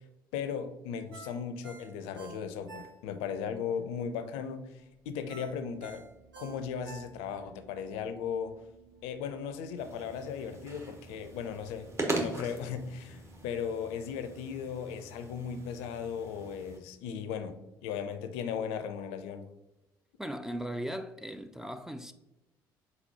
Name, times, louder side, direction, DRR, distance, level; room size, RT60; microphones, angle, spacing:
voice 1, 0.3-4.7 5.1-6.0 6.4-8.6 9.0-11.9 12.2-19.5, left 7 dB, 70° left, 0.4 m, -37 dB
Ringtone, 1.1-3.4 3.7-3.8 5.3-7.5 7.9-8.0, right 5 dB, 90° right, 0.6 m, -49 dB
sound 1, 4.5-13.7, right 6 dB, 65° right, 1.1 m, -60 dB
sound 2, 9.8-16.8, right 2 dB, 25° right, 1.1 m, -40 dB
voice 2, 20.2-22.1, right 1 dB, 5° right, 0.4 m, -38 dB
4.1 x 4.0 x 2.8 m
hypercardioid pair, 55°, 11 cm